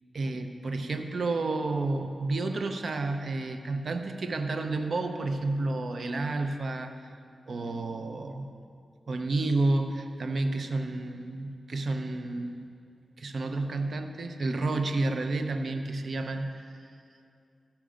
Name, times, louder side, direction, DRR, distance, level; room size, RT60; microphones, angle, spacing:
voice 1, 0.1-7.0 7.5-8.5 9.1-12.7 13.2-16.7, right 2 dB, 65° right, 6 dB, 0.7 m, -30 dB
14.0 x 5.9 x 5.1 m, 2.4 s
cardioid pair, 65°, 0 cm